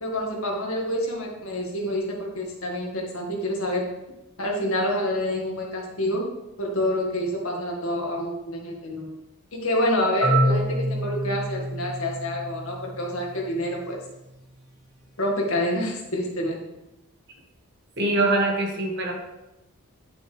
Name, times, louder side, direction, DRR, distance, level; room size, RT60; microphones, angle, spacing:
voice 1, 0.0-3.9 4.4-6.3 6.6-9.1 9.5-14.0 15.2-16.6, left 1 dB, 70° left, -1 dB, 2.0 m, -27 dB
Marimba xylophone, 10.2-14.1, right 1 dB, ahead, 2.9 m, -27 dB
voice 2, 18.0-19.1, right 2 dB, 50° right, 0 dB, 1.7 m, -23 dB
10.5 x 6.1 x 3.4 m, 0.96 s
head